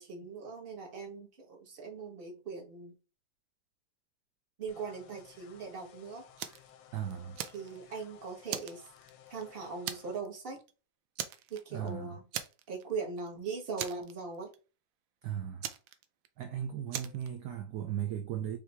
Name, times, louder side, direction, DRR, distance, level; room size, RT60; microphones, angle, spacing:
voice 1, 0.0-2.9 4.6-6.2 7.5-8.9 9.3-10.6 11.5-12.2 12.7-14.5, right 4 dB, 35° right, 1.3 m, -40 dB
sound 1, 4.7-10.2, left 10 dB, 85° left, 1.4 m, -57 dB
Fire, 6.4-6.7 7.1-8.0 8.5-9.4 9.9-10.3 10.6-10.7 11.2-11.9 12.3-12.9 13.2-13.3 13.8-14.6 15.6-16.4 16.9-17.3, right 10 dB, 85° right, 1.3 m, -39 dB
voice 2, 6.9-7.4 11.7-12.2 15.2-15.7 16.4-18.6, right 10 dB, 70° right, 1.0 m, -37 dB
5.4 x 2.7 x 3.4 m
omnidirectional pair, 2.0 m